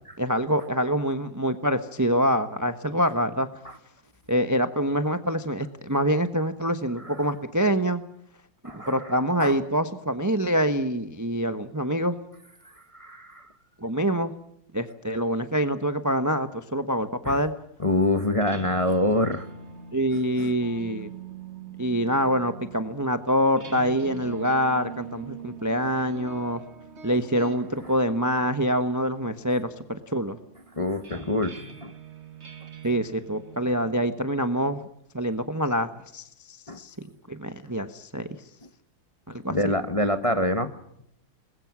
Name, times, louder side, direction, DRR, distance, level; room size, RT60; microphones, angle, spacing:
voice 1, 0.2-3.5 4.3-8.0 8.7-12.2 13.8-14.3 14.7-17.5 19.9-21.1 21.8-26.6 27.0-30.4 32.8-34.8 35.1-36.9 37.3-38.3 39.3-39.6, equal, 15° right, 9 dB, 0.8 m, -25 dB
voice 2, 8.6-9.1 9.4-9.6 12.6-13.5 17.2-17.4 17.8-19.5 20.4-20.5 25.8-25.9 30.8-31.9 36.7-36.8 39.5-40.7, left 1 dB, 20° left, 8 dB, 1.0 m, -26 dB
sound 1, 18.2-33.9, right 6 dB, 35° right, 1.9 m, -43 dB
28.0 x 21.5 x 6.2 m, 0.73 s
omnidirectional pair, 2.2 m